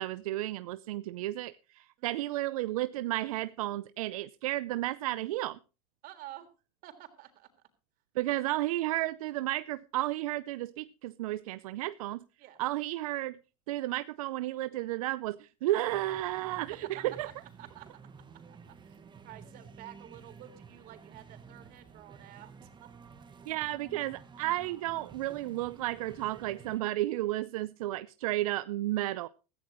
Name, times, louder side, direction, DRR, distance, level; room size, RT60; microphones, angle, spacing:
voice 1, 0.0-5.6 8.2-12.3 12.6-13.4 13.7-17.3 23.5-29.3, right 16 dB, 85° right, 15 dB, 0.6 m, -33 dB
voice 2, 2.0-2.3 6.0-6.5 6.8-7.7 12.4-12.6 17.2-17.9 18.5-22.9, right 13 dB, 55° right, 7 dB, 3.7 m, -51 dB
sound 1, 15.8-26.8, right 5 dB, 25° right, 1.7 m, -52 dB
16.5 x 14.5 x 3.1 m, 0.32 s
supercardioid pair, 110°, 18 cm